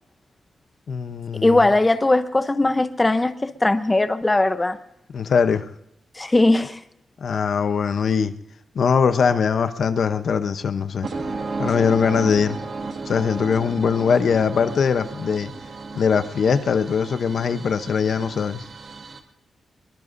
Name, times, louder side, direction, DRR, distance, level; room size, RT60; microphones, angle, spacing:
voice 1, 0.9-1.6 5.1-5.7 7.2-8.3 8.7-11.1 11.6-12.6 13.1-15.5 15.9-18.6, left 6 dB, 65° left, 10 dB, 0.8 m, -21 dB
voice 2, 1.4-4.8 6.2-6.8, left 2 dB, 20° left, 10 dB, 0.8 m, -19 dB
sound 1, 11.0-19.2, right 3 dB, 55° right, 2.0 m, -34 dB
24.0 x 22.0 x 2.6 m, 0.83 s
wide cardioid pair, 115°, 0 cm